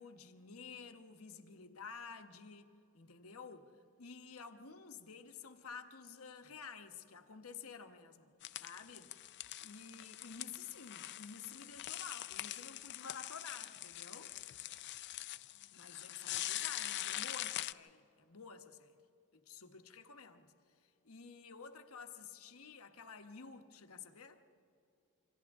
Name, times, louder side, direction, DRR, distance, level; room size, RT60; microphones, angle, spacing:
voice 1, 0.0-9.1 9.6-14.4 15.7-19.0 19.3-24.4, left 5 dB, 70° left, 1.2 m, -52 dB
sound 1, 8.4-17.7, left 14 dB, 50° left, 0.5 m, -43 dB
28.0 x 25.5 x 3.6 m
head